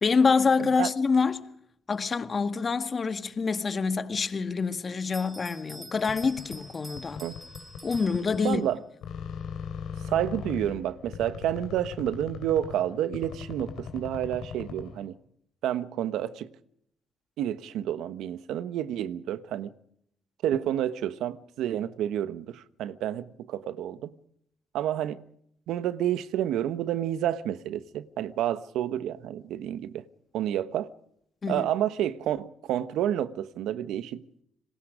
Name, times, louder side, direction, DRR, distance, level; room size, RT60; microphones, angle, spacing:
voice 1, 0.0-1.5 1.9-7.2 7.8-8.6 31.4-31.7, left 5 dB, 40° left, 1.8 m, -26 dB
Bell, 5.1-8.9, right 1 dB, 10° right, 5.9 m, -47 dB
sound 1, 5.9-8.7 9.0-15.1, left 7 dB, 80° left, 4.1 m, -40 dB
voice 2, 8.4-8.8 10.0-15.1 15.6-16.5 17.4-19.7 20.4-24.2 24.7-25.2 25.7-30.0 30.3-30.9 31.5-34.3, right 11 dB, 85° right, 1.1 m, -29 dB
29.0 x 20.0 x 5.1 m
cardioid pair, 90°, 0 cm